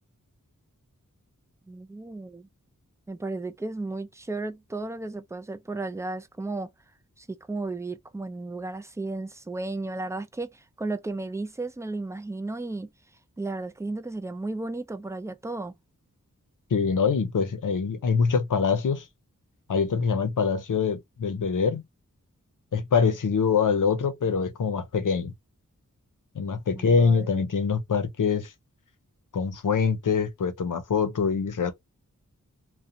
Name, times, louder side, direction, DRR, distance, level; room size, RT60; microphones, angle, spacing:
voice 1, 1.7-2.5 3.1-6.7 7.2-12.9 13.4-15.8 26.8-27.3, right 2 dB, 10° right, 0.3 m, -34 dB
voice 2, 16.7-19.1 19.7-21.8 22.7-25.3 26.3-28.5 29.3-31.7, left 5 dB, 75° left, 0.6 m, -24 dB
2.7 x 2.1 x 2.5 m
wide cardioid pair, 60°, 32 cm